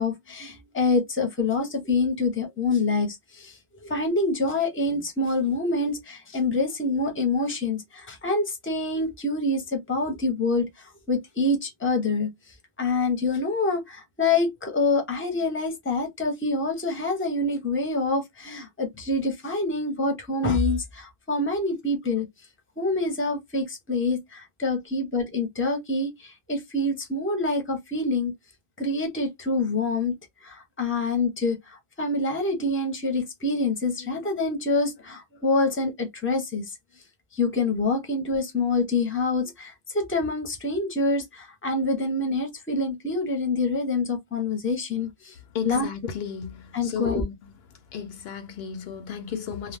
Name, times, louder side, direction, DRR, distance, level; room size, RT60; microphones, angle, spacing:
voice 1, 0.0-12.3 12.8-22.3 22.8-28.3 28.8-30.1 30.4-36.6 37.3-45.3 45.6-45.9 46.7-47.2, left 3 dB, 15° left, 0.7 m, -26 dB
voice 2, 45.5-47.3 47.9-49.8, left 7 dB, 75° left, 0.8 m, -34 dB
2.3 x 2.1 x 3.3 m
omnidirectional pair, 1.0 m